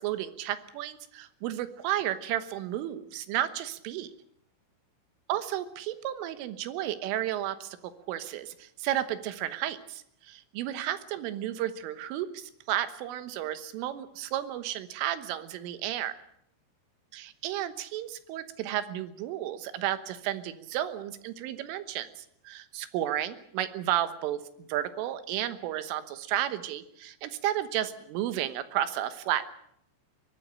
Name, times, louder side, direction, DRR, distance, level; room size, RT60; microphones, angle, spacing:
voice 1, 0.0-4.1 5.3-16.1 17.1-24.4 24.7-29.4, right 12 dB, 75° right, 12 dB, 3.6 m, -32 dB
23.0 x 16.5 x 8.9 m, 0.71 s
omnidirectional pair, 5.9 m